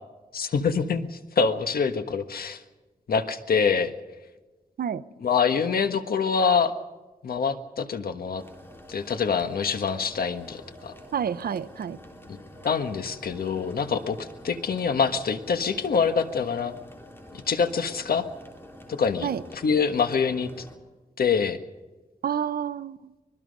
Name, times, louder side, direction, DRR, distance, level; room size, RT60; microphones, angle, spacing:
voice 1, 0.3-2.6 3.1-3.9 5.2-6.7 7.2-8.4 8.9-10.9 12.6-16.7 17.3-18.3 18.9-20.7 21.2-21.6, left 6 dB, 85° left, 8 dB, 1.5 m, -25 dB
sound 1, 8.4-20.8, left 1 dB, 15° left, 3.5 m, -47 dB
voice 2, 11.1-12.0 19.2-19.4 22.2-23.1, right 8 dB, 90° right, 15 dB, 0.7 m, -29 dB
24.5 x 21.0 x 5.4 m, 1.2 s
wide cardioid pair, 120°, 15 cm